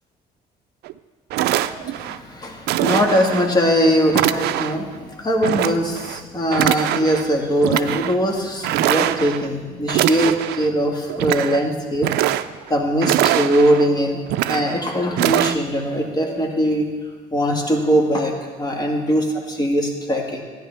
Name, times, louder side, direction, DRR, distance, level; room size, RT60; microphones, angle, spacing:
sound 1, 0.8-0.9 1.3-2.2 2.7-3.5 4.1-4.8 5.4-6.2 6.5-7.2 7.6-8.1 8.6-9.5 9.9-10.7 11.1-11.6 11.9-12.7 13.0-13.9 14.3-14.8 15.2-15.6, right 13 dB, 75° right, 0.4 m, -22 dB
voice 1, 1.6-12.1 12.7-14.2 14.5-16.9 17.3-18.3 18.6-20.4, equal, 25° left, 2 dB, 1.7 m, -21 dB
13.0 x 10.0 x 3.4 m, 1.5 s
cardioid pair, 110°, 17 cm